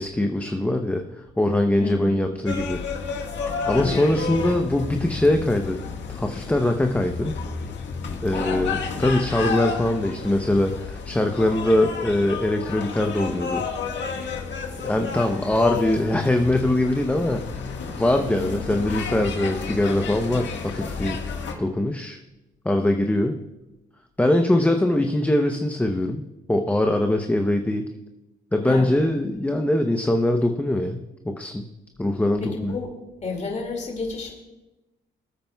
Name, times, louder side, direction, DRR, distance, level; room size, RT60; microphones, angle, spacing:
voice 1, 0.0-2.8 3.7-5.8 6.1-7.3 8.2-13.7 14.8-17.7 18.0-21.2 21.6-22.2 22.6-23.4 24.2-27.9 28.5-31.7 32.0-32.7, left 1 dB, 10° left, 5 dB, 0.7 m, -22 dB
voice 2, 1.8-2.2 3.7-4.2 8.3-8.7 18.3-18.7 28.6-29.0 32.4-32.9 33.2-34.3, left 3 dB, 35° left, 1 dB, 2.1 m, -31 dB
Venditori Campo de fiori .L, 2.5-21.5, left 5 dB, 65° left, 1.5 m, -31 dB
20.5 x 8.8 x 2.3 m, 1.0 s
cardioid pair, 90°, 20 cm